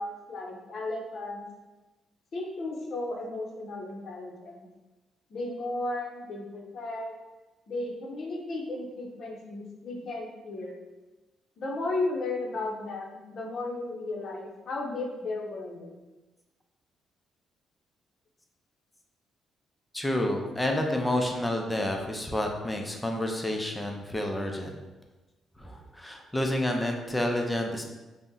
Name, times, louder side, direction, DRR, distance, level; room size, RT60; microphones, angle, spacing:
voice 1, 0.0-1.4 2.3-4.7 5.3-7.1 7.7-10.7 11.6-15.9, left 2 dB, 55° left, 0 dB, 0.6 m, -34 dB
voice 2, 19.9-24.7 25.6-27.8, left 1 dB, 10° left, 2 dB, 0.4 m, -29 dB
2.7 x 2.0 x 3.6 m, 1.2 s
cardioid pair, 90°, 0 cm